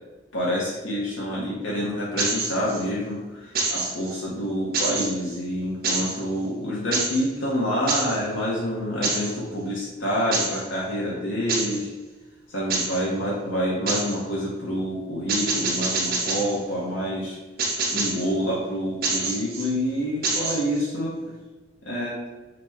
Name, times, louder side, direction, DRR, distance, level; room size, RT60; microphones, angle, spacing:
voice 1, 0.3-11.9 12.5-17.4 17.9-21.1 21.8-22.2, equal, 80° left, -6 dB, 0.7 m, -27 dB
sound 1, 2.2-2.8 3.6-4.2 4.7-5.4 5.8-6.2 6.9-7.3 7.9-8.2 9.0-9.4 10.3-10.6 11.5-11.8 12.7-13.0 13.9-14.2 15.3-16.6 17.6-18.3 19.0-19.7 20.2-20.9, right 3 dB, 50° right, 0.5 m, -26 dB
2.9 x 2.0 x 3.4 m, 1.2 s
head